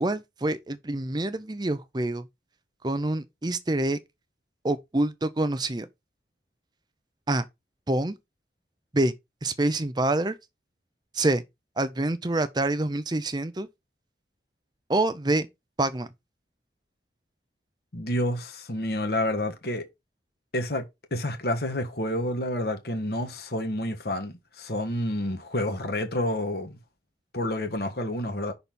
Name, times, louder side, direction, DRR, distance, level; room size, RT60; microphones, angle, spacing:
voice 1, 0.0-2.3 2.8-4.0 4.6-5.9 7.3-7.4 7.9-8.2 8.9-9.1 9.4-10.4 11.1-11.4 11.8-13.7 14.9-15.5 15.8-16.1, right 2 dB, 25° right, 0.6 m, -26 dB
voice 2, 17.9-19.9 20.5-26.8 27.3-28.5, left 1 dB, 60° left, 1.4 m, -29 dB
5.9 x 4.2 x 5.2 m
head